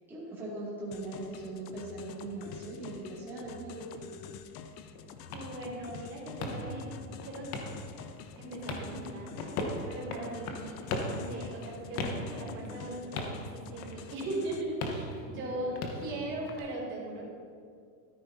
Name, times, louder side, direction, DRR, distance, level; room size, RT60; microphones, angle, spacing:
voice 1, 0.1-4.2 15.4-15.7 16.1-16.3, right 2 dB, 5° right, -10 dB, 2.3 m, -40 dB
sound 1, 0.9-14.6, left 7 dB, 75° left, 0.8 m, -48 dB
sound 2, 4.9-16.6, left 2 dB, 50° left, 1.2 m, -39 dB
voice 2, 5.3-7.6 8.4-17.3, right 1 dB, 25° right, -5 dB, 2.8 m, -39 dB
13.5 x 9.5 x 2.7 m, 2.2 s
supercardioid pair, 160°, 49 cm